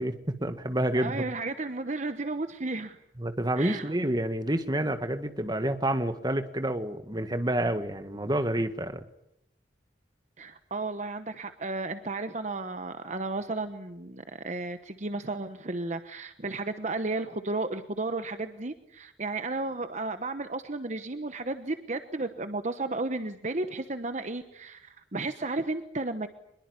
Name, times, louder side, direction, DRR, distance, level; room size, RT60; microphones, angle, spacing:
voice 1, 0.0-1.3 3.2-9.0, right 1 dB, 25° right, 9 dB, 1.8 m, -29 dB
voice 2, 0.9-3.0 3.6-3.9 10.4-26.3, right 2 dB, 40° right, 9 dB, 1.2 m, -33 dB
24.5 x 22.0 x 9.8 m, 0.79 s
head